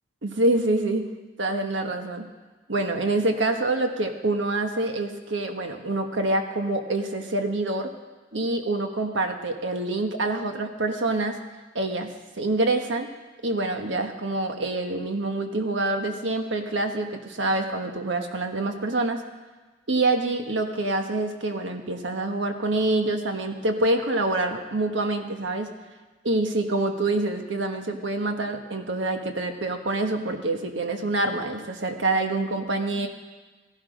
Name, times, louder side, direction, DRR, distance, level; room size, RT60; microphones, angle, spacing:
voice 1, 0.2-1.1 1.4-2.2 2.7-7.9 8.3-11.4 11.7-13.1 13.4-19.2 19.9-25.7 26.2-33.1, right 2 dB, 75° right, 5 dB, 1.4 m, -26 dB
16.0 x 12.0 x 5.1 m, 1.3 s
head